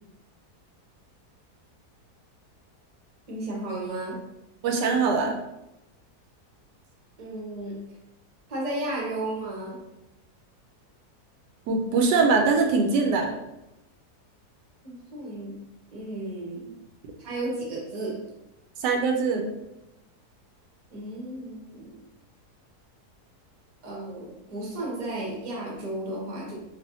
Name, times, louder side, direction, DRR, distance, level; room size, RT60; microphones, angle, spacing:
voice 1, 3.3-4.3 7.2-7.9 8.5-9.9 14.8-15.6 15.9-16.8 17.2-18.3 20.9-22.0 23.8-26.5, right 1 dB, 35° right, -4 dB, 0.7 m, -34 dB
voice 2, 4.6-5.4 11.7-13.3 18.8-19.5, right 4 dB, 90° right, 3 dB, 1.2 m, -22 dB
3.4 x 2.5 x 2.6 m, 0.90 s
omnidirectional pair, 1.7 m